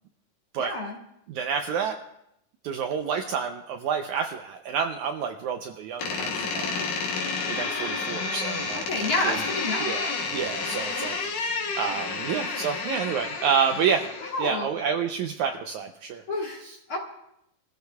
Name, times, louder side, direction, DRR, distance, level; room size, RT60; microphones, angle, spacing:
voice 1, 0.6-1.0 8.7-10.0 14.3-14.7 16.3-16.6 16.9-17.0, left 2 dB, 50° left, -1 dB, 1.9 m, -29 dB
voice 2, 1.3-2.0 2.6-9.4 9.8-14.0 14.4-16.2 16.6-16.8, right 6 dB, 90° right, 4 dB, 1.7 m, -29 dB
Door, 6.0-14.5, left 4 dB, 65° left, 2.9 m, -30 dB
27.5 x 14.5 x 2.3 m, 0.79 s
omnidirectional pair, 4.1 m